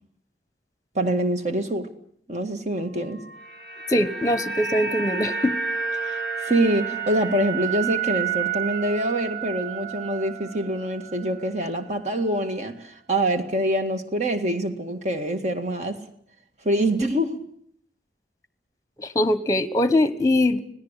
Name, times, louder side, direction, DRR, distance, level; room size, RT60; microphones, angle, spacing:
voice 1, 1.0-1.9 2.3-3.2 6.0-16.0 16.6-17.4, right 1 dB, 40° right, 7 dB, 1.9 m, -25 dB
sound 1, 3.2-11.5 11.7-11.9, right 7 dB, 65° right, 2.0 m, -30 dB
voice 2, 3.9-5.5 19.0-20.6, left 1 dB, 20° left, 13 dB, 1.1 m, -22 dB
25.5 x 17.5 x 8.3 m, 0.67 s
head